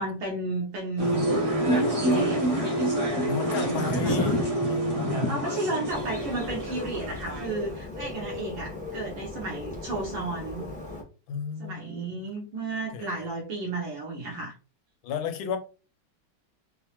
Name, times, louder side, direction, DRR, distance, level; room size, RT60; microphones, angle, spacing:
voice 1, 0.0-2.7 3.5-4.2 5.3-10.7 11.6-14.5, right 2 dB, 75° right, 1.7 m, -33 dB
sound 1, 1.0-7.7, equal, 30° right, 0.7 m, -28 dB
voice 2, 1.6-2.5 3.3-4.4 4.7-5.4 8.0-8.3 11.3-12.2 12.9-13.3 15.0-15.6, left 6 dB, 85° left, 1.4 m, -34 dB
sound 2, 1.6-5.5 5.8-5.9 6.2-6.3, right 2 dB, 45° right, 1.2 m, -30 dB
Bird, 5.9-11.0, left 2 dB, 5° left, 0.7 m, -38 dB
4.3 x 2.1 x 2.9 m
omnidirectional pair, 2.2 m